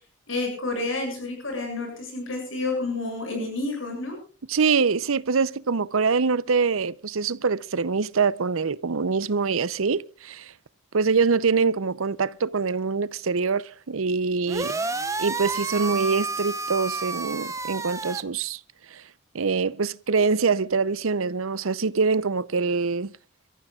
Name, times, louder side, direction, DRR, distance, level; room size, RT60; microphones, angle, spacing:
voice 1, 0.3-4.2, left 2 dB, 75° left, 7.6 m, -29 dB
voice 2, 4.5-10.5 10.9-14.7 15.2-18.6 18.9-19.0 19.3-23.1, right 5 dB, 90° right, 0.7 m, -24 dB
sound 1, 14.5-18.2, right 3 dB, 15° right, 0.8 m, -30 dB
28.5 x 14.5 x 2.4 m
head